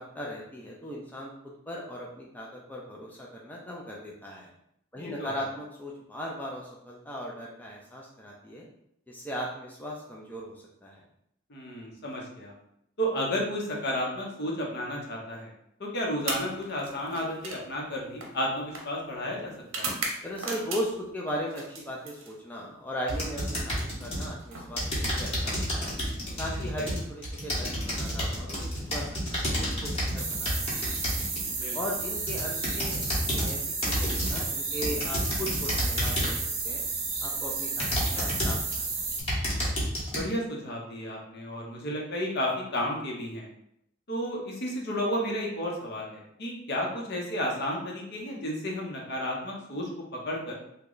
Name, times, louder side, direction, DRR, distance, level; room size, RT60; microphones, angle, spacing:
voice 1, 0.0-4.5 4.9-8.7 9.1-11.0 20.2-25.9 26.4-31.0 31.7-33.0 33.3-36.8 37.2-39.1, equal, 10° left, -3 dB, 0.4 m, -38 dB
voice 2, 5.0-5.3 11.5-12.5 13.0-15.5 15.8-19.9 26.6-26.9 31.6-31.8 40.1-43.5 44.1-50.5, equal, 55° left, -1 dB, 0.8 m, -32 dB
sound 1, 16.2-21.1 21.5-22.7 23.9-25.8 26.8-27.1 27.9-29.0, right 3 dB, 80° right, 0.7 m, -39 dB
sound 2, 23.1-24.3 24.8-31.5 32.0-33.5 33.8-34.5 34.8-36.5 37.1-37.2 37.8-38.8 39.1-40.2, equal, 30° left, 1.0 m, -30 dB
sound 3, 30.2-39.2, right 4 dB, 55° right, 1.0 m, -32 dB
3.1 x 2.2 x 3.7 m, 0.75 s
head